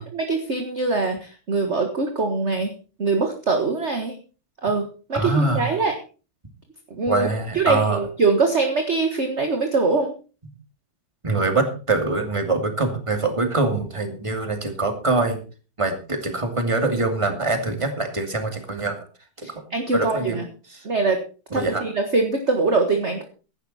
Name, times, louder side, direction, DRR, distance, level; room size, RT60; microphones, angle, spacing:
voice 1, 0.0-2.7 3.0-4.2 4.6-5.9 6.9-7.3 7.5-10.1 19.4-20.4 20.8-21.2 21.5-23.2, right 3 dB, 35° right, 5 dB, 1.8 m, -23 dB
voice 2, 5.1-5.7 7.1-8.0 11.2-15.4 15.8-19.0 19.4-19.5 19.9-20.4 20.7-20.8 21.5-21.8, right 3 dB, 15° right, 5 dB, 2.5 m, -24 dB
16.0 x 11.5 x 4.3 m, 0.36 s
omnidirectional pair, 2.2 m